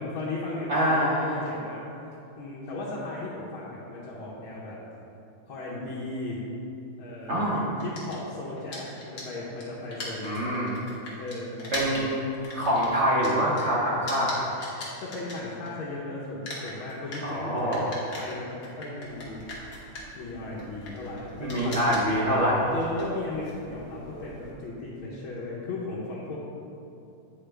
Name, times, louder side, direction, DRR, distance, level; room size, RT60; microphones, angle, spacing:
voice 1, 0.0-1.9 2.4-4.8 5.5-6.4 7.0-10.4 11.2-12.2 15.0-17.8 18.1-19.4 20.1-21.8 22.7-26.4, left 2 dB, 75° left, -7 dB, 1.7 m, -36 dB
voice 2, 0.7-1.4 7.3-7.6 10.2-10.8 11.7-12.2 12.5-14.5 17.2-18.0 21.4-22.7, equal, 70° right, -6 dB, 0.6 m, -25 dB
sound 1, 7.8-16.0 16.2-24.5, left 1 dB, 50° left, 1.7 m, -41 dB
8.8 x 5.0 x 3.4 m, 2.7 s
omnidirectional pair, 2.3 m